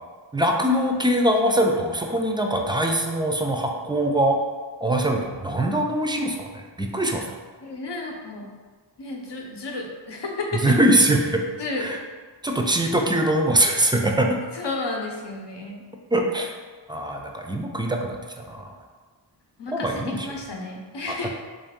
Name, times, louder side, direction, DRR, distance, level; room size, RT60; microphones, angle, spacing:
voice 1, 0.3-4.4 4.8-7.2 10.5-11.4 11.8-12.0 12.4-14.4 16.1-16.5 16.9-18.6 19.7-20.3 21.2-21.3, right 1 dB, 10° right, 2 dB, 0.4 m, -22 dB
voice 2, 7.6-8.5 9.0-10.7 11.6-11.9 14.5-15.8 19.6-19.9 20.2-21.3, left 2 dB, 65° left, 0 dB, 0.8 m, -32 dB
3.3 x 2.7 x 3.5 m, 1.4 s
wide cardioid pair, 55°, 45 cm